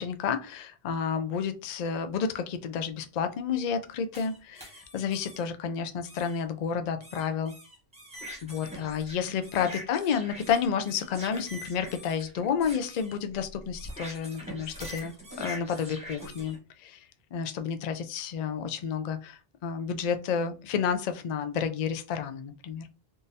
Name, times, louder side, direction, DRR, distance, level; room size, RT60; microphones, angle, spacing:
voice 1, 0.0-7.5 8.4-17.0 17.3-22.9, left 7 dB, 55° left, 8 dB, 0.5 m, -31 dB
sound 1, 4.1-5.4 6.0-6.4 7.0-16.6, equal, 5° right, 1.0 m, -44 dB
3.7 x 2.5 x 2.7 m, 0.32 s
omnidirectional pair, 1.1 m